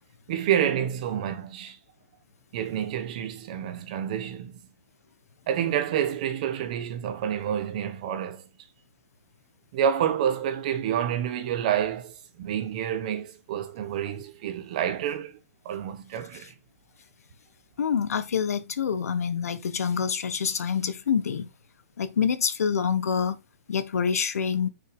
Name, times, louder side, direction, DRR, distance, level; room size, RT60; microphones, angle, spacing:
voice 1, 0.3-1.8 2.5-4.6 5.5-8.4 9.7-15.4 15.6-16.5, right 9 dB, 30° right, 1.2 m, -28 dB
voice 2, 17.8-21.5 22.0-23.4 23.7-24.7, left 7 dB, 70° left, 1.4 m, -26 dB
6.7 x 5.7 x 4.9 m
hypercardioid pair, 180°, 8 cm